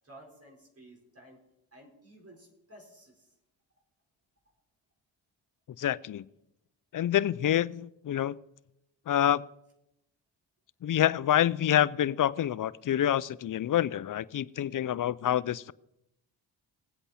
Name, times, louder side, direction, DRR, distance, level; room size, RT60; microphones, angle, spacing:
voice 1, 0.0-1.4 1.7-3.3, right 1 dB, 30° right, 0 dB, 4.5 m, -54 dB
voice 2, 5.8-6.2 6.9-8.3 9.1-9.4 10.8-15.7, left 11 dB, 45° left, 20 dB, 0.6 m, -27 dB
19.5 x 8.0 x 4.3 m, 0.85 s
supercardioid pair, 50°, 45 cm